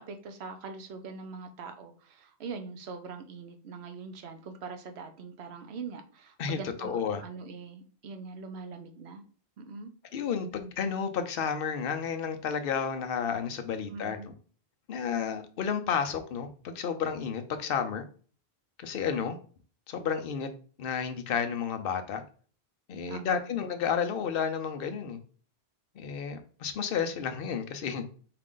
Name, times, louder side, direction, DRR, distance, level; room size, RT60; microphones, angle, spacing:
voice 1, 0.0-9.2 9.6-9.9 13.9-14.3 23.1-23.5, right 4 dB, 80° right, 7 dB, 1.0 m, -42 dB
voice 2, 6.4-7.2 10.1-14.3 14.9-18.0 18.8-19.4 19.9-20.5 20.8-22.2 22.9-25.2 26.0-28.1, left 7 dB, 65° left, 7 dB, 0.8 m, -31 dB
4.7 x 2.4 x 3.7 m, 0.41 s
omnidirectional pair, 1.1 m